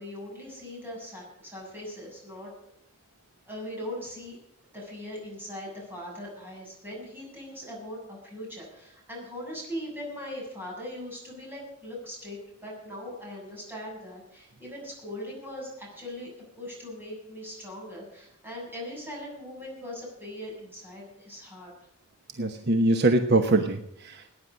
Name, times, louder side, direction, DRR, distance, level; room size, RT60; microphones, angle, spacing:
voice 1, 0.0-2.5 3.5-4.4 4.7-16.3 16.6-21.7, left 1 dB, 10° right, -3 dB, 7.5 m, -40 dB
voice 2, 22.4-24.3, right 2 dB, 50° right, 7 dB, 1.0 m, -23 dB
18.0 x 9.6 x 6.4 m, 0.79 s
head